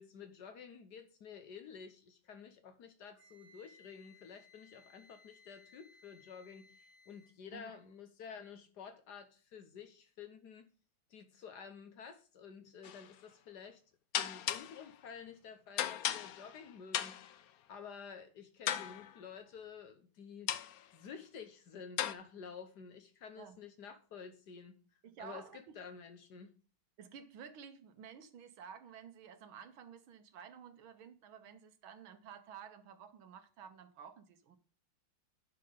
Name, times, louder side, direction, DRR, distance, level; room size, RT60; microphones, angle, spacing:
voice 1, 0.0-10.7 11.1-13.8 14.1-17.3 17.7-24.8 25.2-26.5, left 6 dB, 60° left, 1.4 m, -51 dB
Wind instrument woodwind instrument, 3.2-7.4, left 3 dB, 35° right, 2.1 m, -63 dB
sound 1, 12.8-13.1 14.1-14.9 15.8-16.6 16.9-17.4 18.7-19.2 20.5-20.8 22.0-22.1, left 11 dB, 80° left, 0.8 m, -36 dB
voice 2, 25.0-25.8 27.0-34.6, right 7 dB, 80° right, 1.8 m, -52 dB
8.9 x 5.8 x 5.2 m
omnidirectional pair, 2.2 m